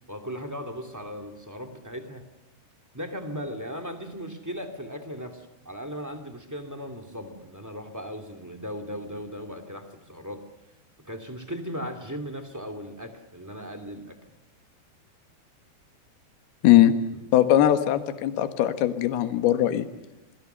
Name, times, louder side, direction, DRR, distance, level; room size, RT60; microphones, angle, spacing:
voice 1, 0.1-2.2 2.9-10.4 11.0-14.2 17.1-17.2, equal, 10° right, 8 dB, 0.9 m, -37 dB
voice 2, 16.6-16.9 17.3-19.9, left 12 dB, 70° left, 9 dB, 3.2 m, -20 dB
28.0 x 21.5 x 6.8 m, 0.96 s
omnidirectional pair, 4.8 m